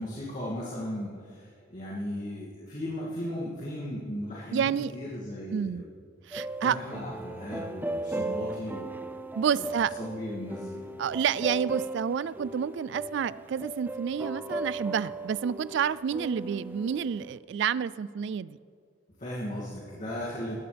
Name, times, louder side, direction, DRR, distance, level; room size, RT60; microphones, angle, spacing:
voice 1, 0.0-5.8 6.6-8.9 9.6-9.7 10.0-10.8 19.2-20.5, equal, 40° left, -7 dB, 2.4 m, -36 dB
voice 2, 4.5-4.9 5.5-5.8 6.3-6.8 9.3-9.9 11.0-18.6, right 7 dB, 65° right, 19 dB, 0.3 m, -29 dB
sound 1, 6.3-17.4, right 1 dB, 10° right, 0.5 m, -37 dB
19.5 x 15.5 x 3.4 m, 2.3 s
head